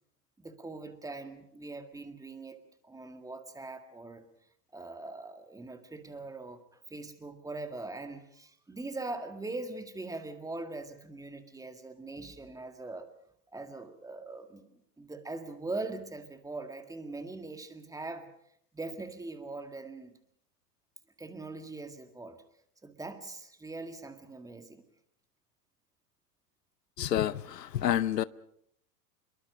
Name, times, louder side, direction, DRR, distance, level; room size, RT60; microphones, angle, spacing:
voice 1, 0.4-4.2 4.7-6.6 6.9-13.1 13.5-14.7 15.0-18.3 18.7-20.2 21.2-22.4 22.8-24.8, right 3 dB, 5° right, 1.9 m, -41 dB
voice 2, 27.0-28.2, left 11 dB, 80° left, 0.8 m, -29 dB
25.5 x 22.5 x 5.1 m
hypercardioid pair, 105°, 48 cm